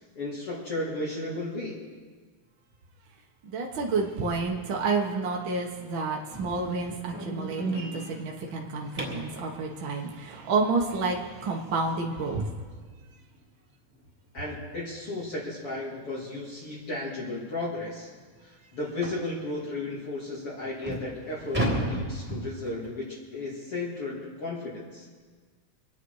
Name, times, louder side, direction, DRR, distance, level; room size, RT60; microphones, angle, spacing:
voice 1, 0.1-1.9 14.3-18.1 18.4-25.1, left 2 dB, 45° left, -7 dB, 3.3 m, -34 dB
voice 2, 3.4-12.4, right 4 dB, 50° right, -1 dB, 1.7 m, -29 dB
sound 1, 6.3-9.4 12.2-12.3 12.8-13.0 13.3-13.4 13.9-14.0 15.1-15.3 15.6-15.8 16.5-16.6 16.9-17.0 17.5-17.6 19.0-19.3 20.0-20.1 20.6-22.9, right 1 dB, 5° right, 3.0 m, -34 dB
25.5 x 9.7 x 4.8 m, 1.5 s
omnidirectional pair, 3.5 m